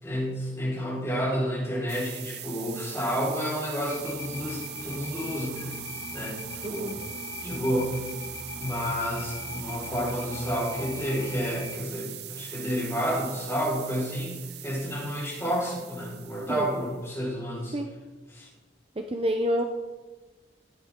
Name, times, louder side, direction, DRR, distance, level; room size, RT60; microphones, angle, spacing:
voice 1, 0.0-5.7 6.1-6.4 6.7-6.9 7.4-7.9 8.6-17.8 18.3-18.5, equal, 15° left, -7 dB, 4.6 m, -30 dB
sound 1, 1.9-17.0, right 11 dB, 55° right, 0.9 m, -41 dB
sound 2, 3.9-11.8, left 3 dB, 80° left, 1.6 m, -41 dB
voice 2, 6.6-7.0 16.5-16.7 17.7-17.9 19.1-19.6, equal, 30° right, 4 dB, 0.6 m, -27 dB
16.0 x 11.5 x 3.7 m, 1.3 s
head